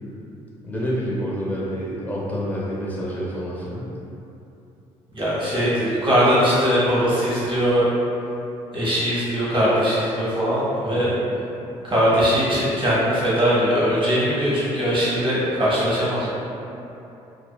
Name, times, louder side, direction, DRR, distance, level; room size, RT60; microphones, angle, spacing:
voice 1, 0.6-3.9 10.9-11.1, equal, 10° left, -6 dB, 0.8 m, -28 dB
voice 2, 5.1-7.9 8.7-11.1 11.8-16.3, equal, 30° right, -8 dB, 1.2 m, -20 dB
2.7 x 2.2 x 2.3 m, 2.9 s
hypercardioid pair, 50°, 16 cm